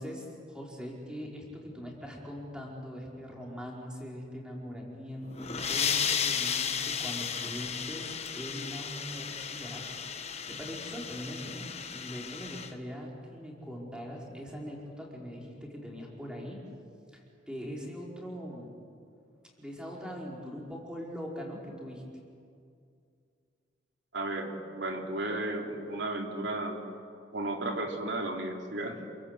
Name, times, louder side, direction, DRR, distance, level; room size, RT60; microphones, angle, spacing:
voice 1, 0.0-16.6 17.1-18.7 19.6-22.0, equal, 5° right, -2 dB, 4.8 m, -41 dB
sound 1, 5.2-12.7, left 7 dB, 35° left, 1.4 m, -34 dB
voice 2, 24.1-26.8 27.3-29.0, right 2 dB, 65° right, 2 dB, 3.4 m, -34 dB
29.0 x 23.0 x 8.3 m, 2.4 s
head